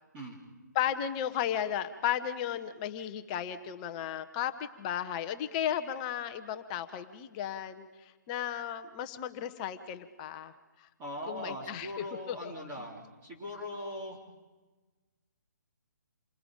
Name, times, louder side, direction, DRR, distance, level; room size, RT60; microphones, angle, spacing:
voice 1, 0.7-10.5 10.8-10.9 11.3-11.9 12.3-12.5, left 10 dB, 25° left, 9 dB, 1.0 m, -34 dB
voice 2, 11.0-14.2, equal, 20° right, -4 dB, 3.9 m, -40 dB
28.5 x 24.5 x 5.1 m, 1.2 s
figure-of-eight pair, 135°, 10 cm